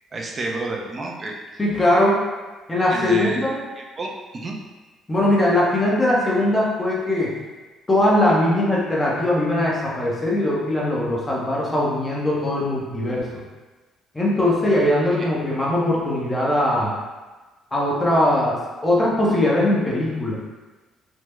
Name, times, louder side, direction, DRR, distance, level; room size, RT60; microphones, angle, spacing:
voice 1, 0.1-1.3 2.9-4.6 15.2-15.3, right 2 dB, 30° right, -1 dB, 0.4 m, -30 dB
voice 2, 1.6-2.2 2.7-3.6 5.1-7.3 7.9-13.2 14.1-16.9 17.7-20.4, left 1 dB, 15° left, -5 dB, 0.7 m, -20 dB
3.4 x 2.0 x 3.1 m, 1.2 s
cardioid pair, 135°, 0 cm